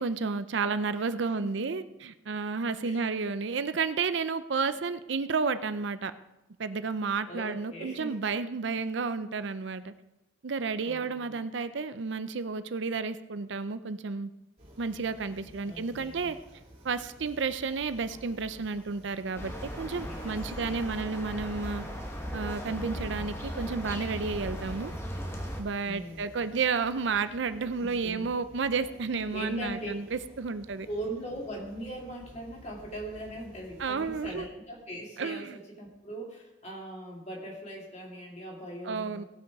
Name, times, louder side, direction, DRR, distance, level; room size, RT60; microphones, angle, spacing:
voice 1, 0.0-6.1 6.6-9.9 10.4-14.3 14.8-16.4 16.8-21.8 22.3-24.9 25.6-30.9 33.8-34.5 35.2-35.6 38.8-39.2, right 4 dB, 70° right, 12 dB, 0.5 m, -31 dB
voice 2, 7.3-8.2 10.8-11.4 15.6-16.3 20.0-20.8 25.8-26.3 27.8-28.3 29.3-29.9 30.9-39.3, right 1 dB, 35° left, -1 dB, 2.6 m, -40 dB
sound 1, 14.6-34.5, right 1 dB, 40° right, 2.8 m, -53 dB
sound 2, 19.4-25.6, equal, 15° left, 1.2 m, -37 dB
17.5 x 6.1 x 4.7 m, 0.96 s
head